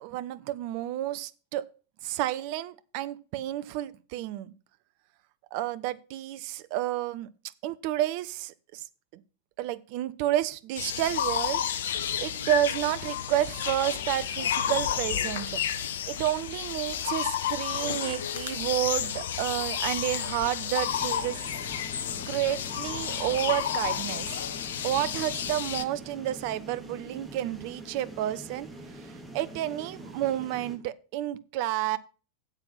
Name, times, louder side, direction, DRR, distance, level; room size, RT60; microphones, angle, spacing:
voice 1, 0.0-1.7 2.0-4.5 5.5-7.3 7.6-8.9 9.6-15.6 16.1-21.5 22.3-24.4 24.8-28.7 28.9-32.0, right 13 dB, 45° right, 0.7 m, -30 dB
sound 1, 10.8-25.9, left 9 dB, 60° left, 0.7 m, -31 dB
sound 2, 20.8-30.8, right 1 dB, 10° right, 2.7 m, -45 dB
9.1 x 7.9 x 5.6 m
figure-of-eight pair, 90°, 0 cm